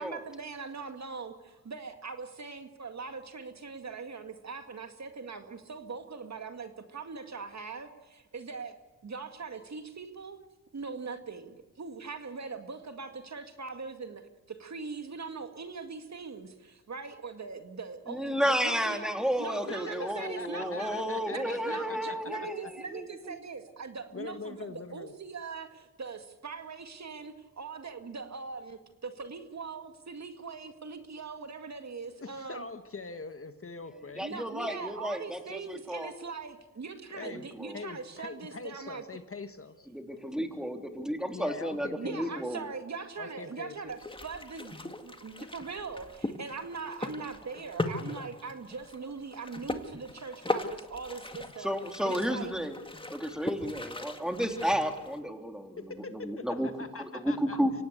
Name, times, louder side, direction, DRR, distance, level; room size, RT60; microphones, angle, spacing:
voice 1, 0.0-8.8 9.0-10.4 10.7-19.1 19.4-21.0 21.3-32.6 34.2-39.0 41.9-51.7 52.0-52.5, right 4 dB, 50° right, 7 dB, 2.2 m, -41 dB
voice 2, 18.1-23.4 34.2-36.1 37.2-37.8 39.9-42.6 51.6-52.8 53.1-56.7 56.9-57.7, equal, ahead, 5 dB, 3.2 m, -32 dB
voice 3, 19.7-22.2 22.6-22.7 24.1-25.1 32.2-34.2 37.1-37.5 37.7-39.9 41.3-42.5 43.2-43.9 55.8-57.6, left 4 dB, 40° left, 9 dB, 1.6 m, -43 dB
sound 1, 43.9-55.2, left 2 dB, 15° left, 2.0 m, -39 dB
25.0 x 17.5 x 8.2 m, 1.1 s
cardioid pair, 70°, 34 cm